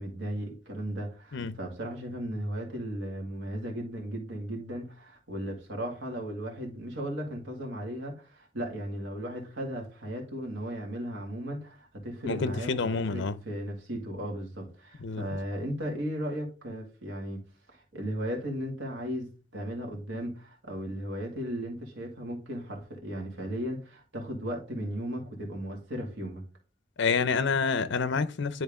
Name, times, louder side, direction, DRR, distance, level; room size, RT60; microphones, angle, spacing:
voice 1, 0.0-17.4 17.7-26.4, equal, 70° right, 2.1 m, -36 dB
voice 2, 12.3-13.4 15.0-15.2 27.0-28.6, left 5 dB, 65° left, 0.6 m, -28 dB
10.5 x 3.6 x 3.6 m
head